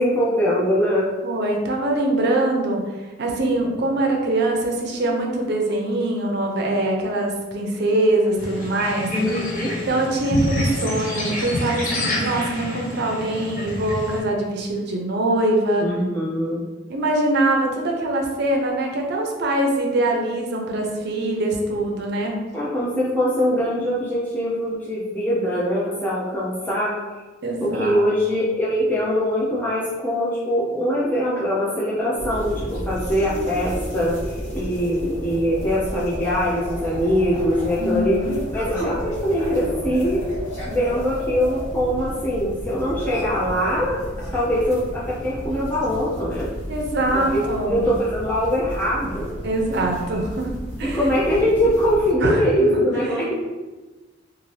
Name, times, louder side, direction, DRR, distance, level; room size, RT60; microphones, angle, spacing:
voice 1, 0.0-1.1 9.1-9.7 15.8-16.6 22.5-26.9 27.6-34.2 34.5-38.2 38.5-40.2 40.6-44.0 44.3-46.5 47.1-49.3 50.9-53.4, equal, 10° left, -9 dB, 0.5 m, -22 dB
voice 2, 1.2-2.8 3.2-9.1 9.9-15.9 16.9-22.3 27.4-28.0 28.3-28.4 37.8-38.4 46.7-47.9 49.4-50.5 50.8-51.1 52.2-52.4 52.7-52.8, right 1 dB, 60° right, 1 dB, 0.5 m, -23 dB
sound 1, 8.4-14.2, left 1 dB, 45° left, 0.8 m, -27 dB
sound 2, 32.1-41.6, left 1 dB, 30° right, 0.9 m, -37 dB
sound 3, 32.2-52.1, equal, 70° left, 1.2 m, -33 dB
2.6 x 2.5 x 3.2 m, 1.2 s
head